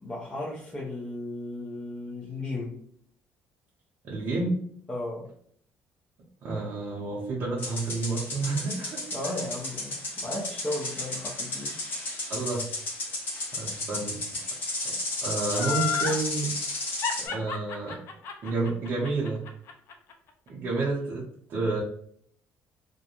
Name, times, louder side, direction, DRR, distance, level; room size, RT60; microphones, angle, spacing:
voice 1, 0.0-2.7 4.9-5.2 9.1-11.8, left 2 dB, 20° left, -6 dB, 0.6 m, -35 dB
voice 2, 4.0-4.6 6.4-9.3 12.3-12.6 13.0-13.2 13.5-14.2 15.2-16.5 17.2-18.0 18.4-19.4 20.5-21.8, right 3 dB, 45° right, -7 dB, 0.6 m, -30 dB
sound 1, 7.6-17.3, left 2 dB, 45° left, 1.0 m, -33 dB
Laughter, 15.5-16.2 17.0-20.1 20.5-20.6, left 7 dB, 65° left, 0.4 m, -31 dB
2.4 x 2.1 x 2.9 m, 0.63 s
cardioid pair, 135°, 5 cm